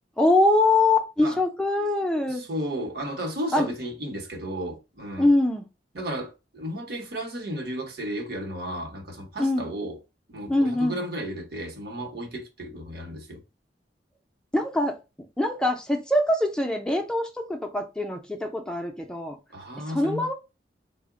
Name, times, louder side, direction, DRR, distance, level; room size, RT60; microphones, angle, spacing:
voice 1, 0.2-2.4 3.5-3.7 5.2-5.6 9.4-9.7 10.5-11.0 14.5-15.0 15.4-19.4 19.9-20.3, left 2 dB, 5° left, 0.4 m, -23 dB
voice 2, 2.3-5.3 5.9-10.0 10.3-13.4 19.5-20.3, equal, 65° right, 0.9 m, -34 dB
3.7 x 2.1 x 3.7 m
head